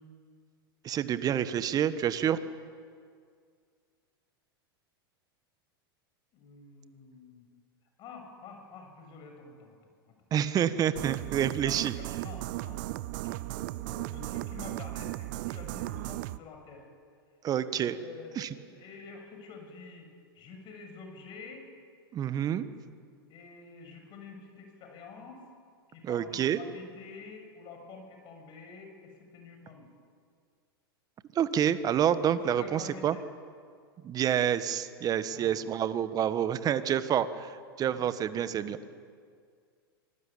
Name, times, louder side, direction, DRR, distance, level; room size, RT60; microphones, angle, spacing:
voice 1, 0.8-2.4 10.3-11.9 17.4-18.0 18.4-18.5 22.1-22.7 26.0-26.6 31.3-33.2 34.0-38.8, right 9 dB, 30° right, 13 dB, 1.4 m, -28 dB
voice 2, 6.3-7.5 8.0-9.8 11.6-12.8 13.2-16.9 17.8-20.1 20.3-21.7 23.3-25.4 25.9-29.9 32.2-33.3 35.3-36.3 37.9-38.0 38.6-39.0, left 4 dB, 40° left, 4 dB, 6.6 m, -48 dB
sound 1, 10.9-16.4, right 18 dB, 55° right, 0.6 m, -36 dB
25.5 x 19.5 x 8.6 m, 2.1 s
hypercardioid pair, 95°, 13 cm